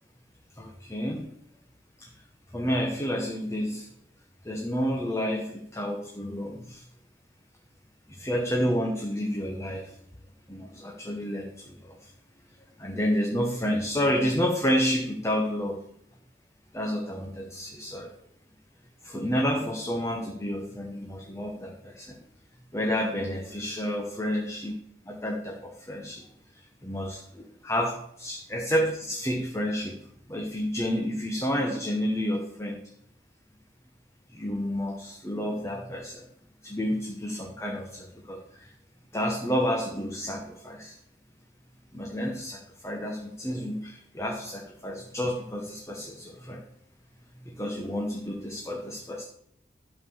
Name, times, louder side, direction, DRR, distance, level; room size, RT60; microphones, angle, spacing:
voice 1, 0.5-1.3 2.0-2.1 2.5-3.9 4.4-6.8 8.1-10.0 10.5-12.1 12.8-15.8 16.7-18.2 19.0-22.2 22.7-24.7 25.0-26.3 26.5-30.0 30.3-32.8 34.3-36.3 36.6-38.7 39.1-41.0 41.9-46.6 47.3-49.2, equal, 15° left, 1 dB, 1.1 m, -30 dB
11.5 x 5.6 x 7.1 m, 0.71 s
head